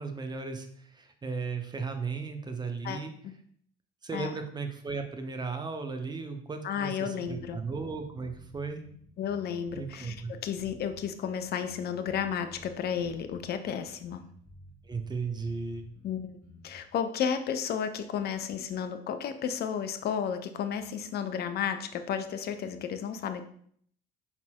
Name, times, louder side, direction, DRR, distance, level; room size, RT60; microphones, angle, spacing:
voice 1, 0.0-3.1 4.0-8.8 9.7-10.3 14.8-15.9, right 4 dB, 15° right, 6 dB, 0.6 m, -36 dB
voice 2, 2.8-3.3 4.1-4.3 6.6-7.6 9.2-14.2 16.0-16.4 16.6-23.4, left 8 dB, 35° left, 8 dB, 0.5 m, -33 dB
sound 1, 7.2-16.8, equal, 5° left, 1.8 m, -53 dB
5.6 x 4.1 x 2.2 m, 0.63 s
figure-of-eight pair, 55°, 29 cm